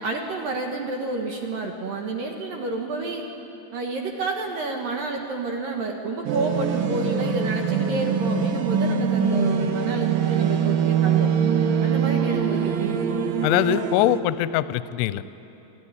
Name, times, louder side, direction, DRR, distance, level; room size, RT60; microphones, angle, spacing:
voice 1, 0.0-3.2 3.7-11.3 11.8-13.2, right 3 dB, 65° right, 2 dB, 2.7 m, -30 dB
sound 1, 6.3-14.2, right 7 dB, 80° right, 3.4 m, -23 dB
voice 2, 13.4-15.3, left 14 dB, 80° left, 16 dB, 2.6 m, -22 dB
27.5 x 14.0 x 10.0 m, 3.0 s
omnidirectional pair, 5.2 m